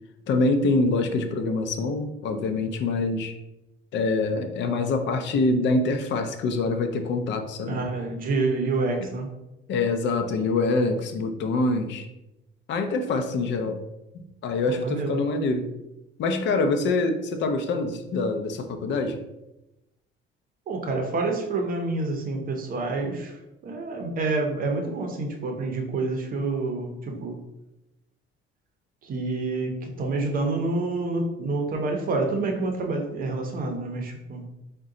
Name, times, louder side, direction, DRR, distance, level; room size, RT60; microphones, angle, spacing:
voice 1, 0.3-3.3 3.9-7.8 9.7-12.1 12.7-13.8 14.1-15.7 16.2-19.2, left 3 dB, 60° left, 7 dB, 0.5 m, -25 dB
voice 2, 7.6-9.3 14.7-15.2 20.7-27.4 29.0-34.4, right 3 dB, 40° right, 2 dB, 0.7 m, -28 dB
3.8 x 2.2 x 3.7 m, 0.93 s
cardioid pair, 160°, 21 cm